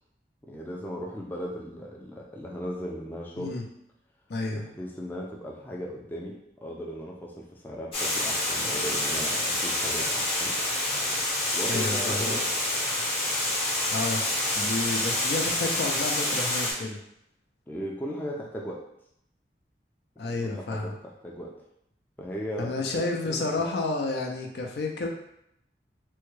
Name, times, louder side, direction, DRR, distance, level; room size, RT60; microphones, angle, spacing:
voice 1, 0.5-3.5 4.5-10.6 11.5-12.5 17.7-18.8 20.2-21.5 22.2-23.7, equal, 10° left, -2 dB, 0.3 m, -37 dB
voice 2, 4.3-4.7 11.7-12.3 13.9-14.3 14.5-17.0 20.2-21.0 22.6-25.1, left 2 dB, 70° left, 2 dB, 0.5 m, -30 dB
Water, 7.9-16.7, left 1 dB, 30° left, 0.8 m, -27 dB
3.5 x 2.2 x 3.1 m, 0.76 s
head